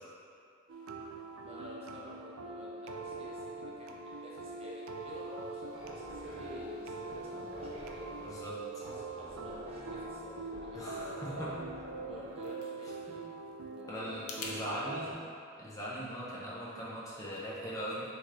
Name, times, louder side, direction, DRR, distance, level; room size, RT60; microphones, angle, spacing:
sound 1, 0.7-15.1, right 3 dB, 80° right, 0.4 m, -43 dB
voice 1, 1.4-8.1 8.7-11.5 12.0-13.2 13.7-15.2, left 1 dB, 30° right, -6 dB, 0.7 m, -50 dB
sound 2, 5.7-12.5, equal, 60° right, 1.1 m, -49 dB
voice 2, 8.2-8.5 10.7-11.5 13.9-15.1 15.6-18.0, equal, 15° left, -7 dB, 0.7 m, -40 dB
sound 3, 11.9-14.6, left 4 dB, 90° left, 0.6 m, -48 dB
6.0 x 3.2 x 2.5 m, 2.3 s
head